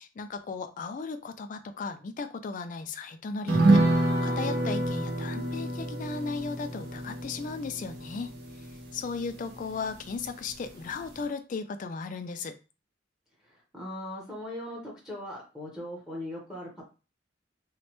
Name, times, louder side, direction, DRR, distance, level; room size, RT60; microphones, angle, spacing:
voice 1, 0.0-12.6, left 4 dB, 40° left, 9 dB, 0.3 m, -36 dB
sound 1, 3.5-10.3 10.6-10.7 11.0-11.2, right 2 dB, 55° right, 0.6 m, -28 dB
voice 2, 13.4-16.8, left 1 dB, 5° right, -3 dB, 0.8 m, -39 dB
3.1 x 2.1 x 2.9 m, 0.31 s
head